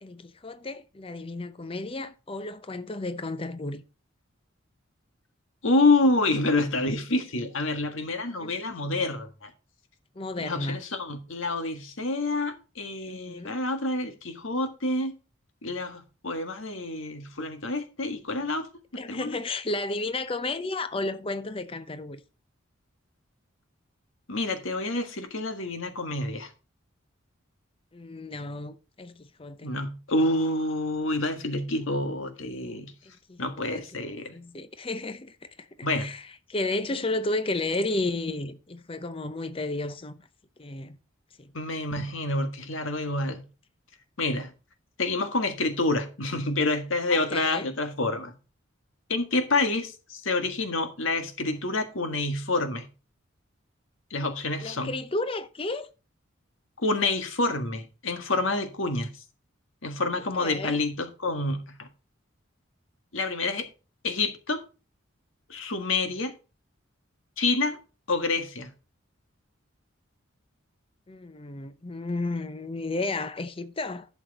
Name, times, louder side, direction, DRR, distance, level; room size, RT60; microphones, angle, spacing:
voice 1, 0.0-3.8 8.4-8.5 10.2-10.8 13.1-13.6 19.0-22.2 27.9-29.7 33.3-34.0 34.3-35.7 35.9-40.2 40.6-41.0 41.4-41.5 47.1-47.7 54.6-55.9 60.1-60.8 71.1-74.1, left 2 dB, 25° left, 0.6 m, -33 dB
voice 2, 5.6-9.5 10.4-15.1 15.6-18.7 19.1-19.4 24.3-26.5 29.6-32.9 33.4-34.3 35.8-36.1 41.5-43.4 44.2-44.5 45.0-48.3 49.1-52.9 54.1-54.9 56.8-59.1 59.8-61.9 63.1-63.7 64.0-64.6 65.5-66.3 67.4-67.8 68.1-68.7, left 2 dB, 80° left, 1.7 m, -28 dB
11.5 x 6.3 x 4.1 m
head